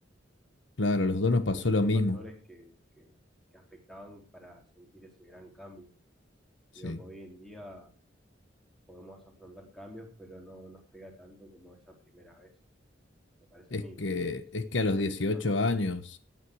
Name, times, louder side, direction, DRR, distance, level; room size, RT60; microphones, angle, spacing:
voice 1, 0.8-2.2 6.8-7.0 13.7-16.2, left 2 dB, 80° left, 1.3 m, -28 dB
voice 2, 1.3-3.1 3.5-5.9 6.8-7.9 8.9-12.5 13.5-15.6, equal, ahead, 4.1 m, -50 dB
16.5 x 9.7 x 4.8 m
head